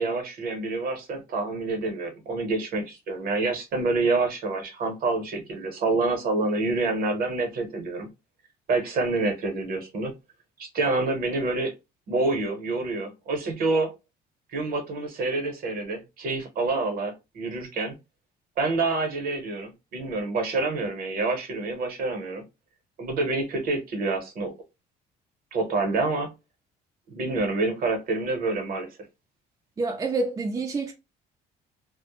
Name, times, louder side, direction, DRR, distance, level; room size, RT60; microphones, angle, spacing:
voice 1, 0.0-8.1 8.7-10.1 10.6-11.7 12.1-13.9 14.5-17.9 18.6-22.4 23.0-24.5 25.5-26.3 27.1-28.9, right 3 dB, 60° right, 0.9 m, -27 dB
voice 2, 29.8-30.9, right 3 dB, 20° right, 0.4 m, -27 dB
2.1 x 2.0 x 2.9 m
cardioid pair, 110°, 17 cm